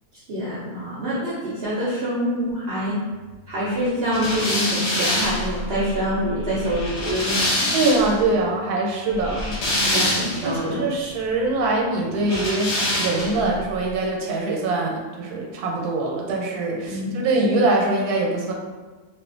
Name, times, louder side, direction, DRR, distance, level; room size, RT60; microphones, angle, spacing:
voice 1, 0.3-3.0 3.5-7.7 9.8-10.8 13.4-13.5 16.8-17.1, equal, 65° right, -7 dB, 0.6 m, -26 dB
sound 1, 4.1-8.2 9.1-10.6 12.2-13.5, left 1 dB, 55° left, 0.9 m, -25 dB
voice 2, 7.7-9.5 10.4-12.7 13.0-18.5, right 2 dB, 90° right, -1 dB, 1.1 m, -23 dB
2.4 x 2.4 x 2.4 m, 1.3 s
omnidirectional pair, 1.6 m